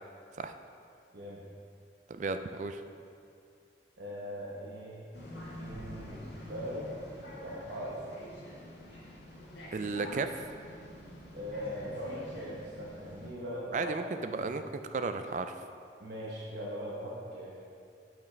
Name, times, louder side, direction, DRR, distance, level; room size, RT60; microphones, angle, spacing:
voice 1, 2.1-2.8 9.7-10.3 13.7-14.6 14.9-15.5, right 4 dB, 40° right, 8 dB, 0.3 m, -33 dB
voice 2, 4.0-6.9 7.4-8.1 11.3-13.9 14.2-14.6 16.0-17.5, equal, 75° right, -6 dB, 1.0 m, -40 dB
sound 1, 5.1-13.3, left 1 dB, 80° left, 1.5 m, -47 dB
8.5 x 6.0 x 3.3 m, 2.4 s
head